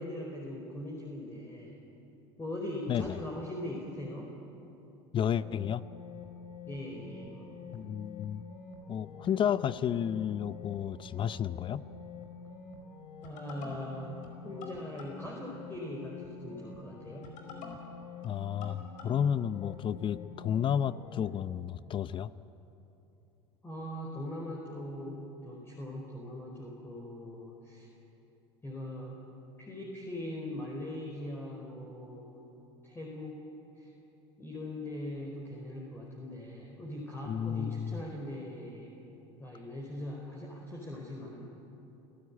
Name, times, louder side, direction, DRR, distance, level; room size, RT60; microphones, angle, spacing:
voice 1, 0.0-1.7 2.4-4.4 6.7-7.6 13.2-14.2 14.4-17.3 23.6-27.9 28.6-29.2 29.6-32.4 32.8-33.5 33.8-33.9 34.4-39.0 39.4-41.4, left 1 dB, 15° left, -2 dB, 4.7 m, -41 dB
voice 2, 5.1-5.8 7.7-8.4 8.9-11.8 18.2-22.3 37.3-38.0, left 9 dB, 35° left, 16 dB, 0.7 m, -32 dB
sound 1, 5.2-21.3, left 4 dB, 60° left, 5.2 m, -47 dB
28.5 x 15.5 x 10.0 m, 3.0 s
hypercardioid pair, 90°, 15 cm